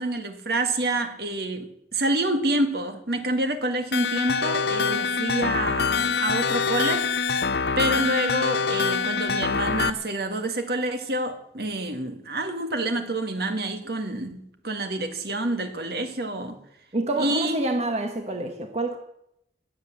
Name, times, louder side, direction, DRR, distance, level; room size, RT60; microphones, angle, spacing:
voice 1, 0.0-7.1 7.8-16.6 17.2-17.5, right 1 dB, 55° right, 1.9 m, -27 dB
sound 1, 3.9-9.9, left 5 dB, 65° left, 0.6 m, -25 dB
voice 2, 16.9-19.0, right 2 dB, 35° right, 1.3 m, -27 dB
20.5 x 8.4 x 7.6 m
head